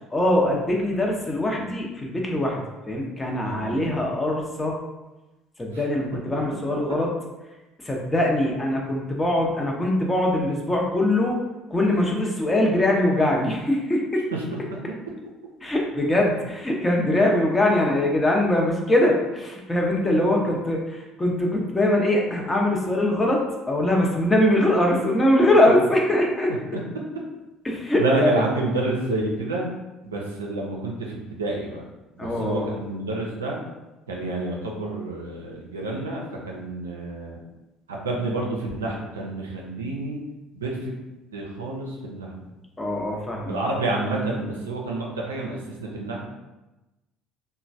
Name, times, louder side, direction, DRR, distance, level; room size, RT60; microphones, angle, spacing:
voice 1, 0.1-4.8 5.6-7.1 7.8-11.4 11.7-14.0 15.6-26.5 27.6-28.4 32.2-32.7 42.8-43.5, left 1 dB, 20° left, -1 dB, 0.7 m, -22 dB
voice 2, 3.5-3.8 5.7-5.8 28.0-29.7 30.0-31.8 32.2-33.6 34.1-37.4 37.9-40.2 40.5-40.9 41.3-42.3 43.5-46.3, right 2 dB, 85° right, -2 dB, 0.4 m, -29 dB
3.0 x 2.1 x 2.6 m, 1.0 s
hypercardioid pair, 60°, 0 cm